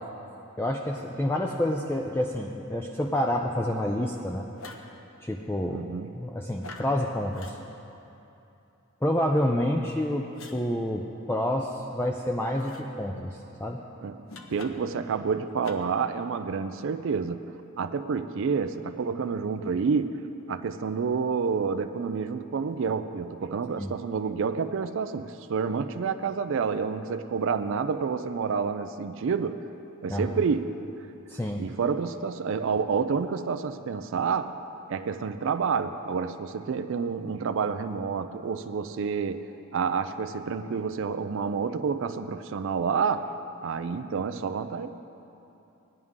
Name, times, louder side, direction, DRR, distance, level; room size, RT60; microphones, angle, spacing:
voice 1, 0.6-4.5 5.2-5.9 6.2-7.6 9.0-13.8 23.8-23.9 30.1-30.3 31.3-31.6, left 1 dB, 10° left, 1 dB, 0.4 m, -28 dB
sound 1, 4.6-4.9 6.6-6.9 7.3-7.6 10.3-10.6 12.5-12.8 14.3-15.0 15.6-16.0, left 2 dB, 70° left, 0.9 m, -44 dB
voice 2, 5.7-6.1 14.0-14.2 14.5-17.4 17.8-20.2 20.5-29.6 30.0-30.8 31.6-34.5 34.9-43.3 43.6-44.9, right 5 dB, 60° right, 9 dB, 0.4 m, -29 dB
17.0 x 11.0 x 3.6 m, 2.9 s
head